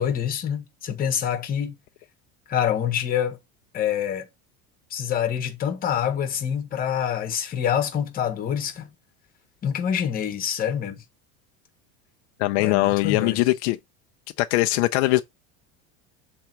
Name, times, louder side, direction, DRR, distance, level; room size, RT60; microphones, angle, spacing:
voice 1, 0.0-1.7 2.5-3.4 3.7-4.3 4.9-8.9 9.6-11.0 12.6-13.4, left 9 dB, 25° left, 1.4 m, -26 dB
voice 2, 12.4-13.8 14.4-15.2, left 19 dB, 75° left, 0.6 m, -21 dB
6.9 x 3.6 x 4.6 m
cardioid pair, 155°, 34 cm